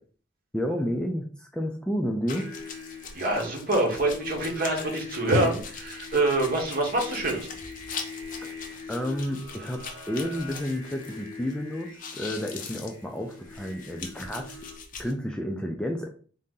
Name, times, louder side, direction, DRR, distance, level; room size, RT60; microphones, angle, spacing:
voice 1, 0.5-2.5 8.4-8.5 8.9-14.7 15.0-16.1, equal, 5° left, 3 dB, 0.3 m, -31 dB
sound 1, 2.3-11.5 11.8-15.1, left 5 dB, 45° left, 0.6 m, -42 dB
Singing, 2.3-14.8, left 4 dB, 25° left, 1.4 m, -43 dB
voice 2, 3.1-7.5, right 2 dB, 50° right, 0 dB, 1.2 m, -26 dB
sound 2, 5.3-6.5 8.2-8.4 8.7-9.8 10.2-11.6, equal, 75° right, 1.0 m, -33 dB
3.7 x 2.7 x 3.7 m, 0.42 s
head